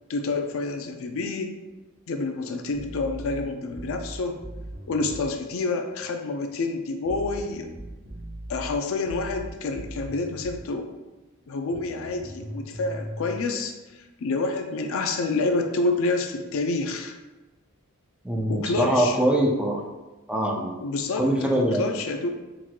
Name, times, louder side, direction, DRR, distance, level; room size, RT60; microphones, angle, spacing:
voice 1, 0.1-1.5 2.1-4.4 4.9-7.7 8.5-10.9 11.5-13.8 14.2-17.1 18.5-19.2 20.8-22.3, left 3 dB, 65° left, 5 dB, 0.4 m, -28 dB
sound 1, 2.7-5.3 7.1-10.7 11.7-13.4, right 1 dB, 90° right, 1.0 m, -39 dB
voice 2, 18.2-19.8 20.3-20.8 21.2-21.9, right 1 dB, 5° right, -1 dB, 0.4 m, -23 dB
4.5 x 3.9 x 2.2 m, 1.1 s
head